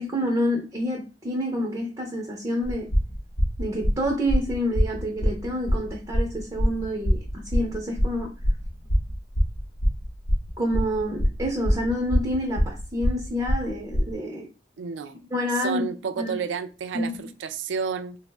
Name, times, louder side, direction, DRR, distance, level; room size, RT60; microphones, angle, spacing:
voice 1, 0.0-2.9 3.6-8.3 10.6-14.5 15.3-15.8 16.2-16.4 16.9-17.2, equal, 20° right, 0.5 m, -28 dB
sound 1, 2.6-14.1, equal, 65° left, 0.7 m, -24 dB
voice 2, 14.8-15.2 15.5-18.2, right 6 dB, 80° right, 0.3 m, -31 dB
2.4 x 2.0 x 3.3 m
head